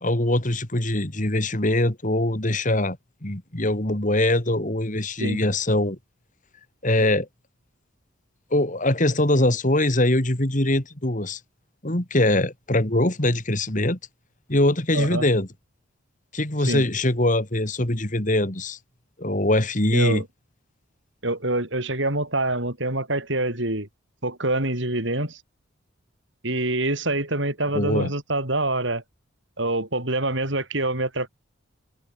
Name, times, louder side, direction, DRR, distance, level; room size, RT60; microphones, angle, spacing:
voice 1, 0.0-3.0 3.2-6.0 6.8-7.3 8.5-11.4 11.8-14.0 14.5-15.5 16.3-18.8 19.2-20.2 27.7-28.1, left 1 dB, 40° left, 2.8 m, -22 dB
voice 2, 14.9-15.3 16.6-16.9 19.9-20.3 21.2-23.9 24.2-25.4 26.4-29.0 29.6-31.3, right 2 dB, 60° right, 6.0 m, -25 dB
head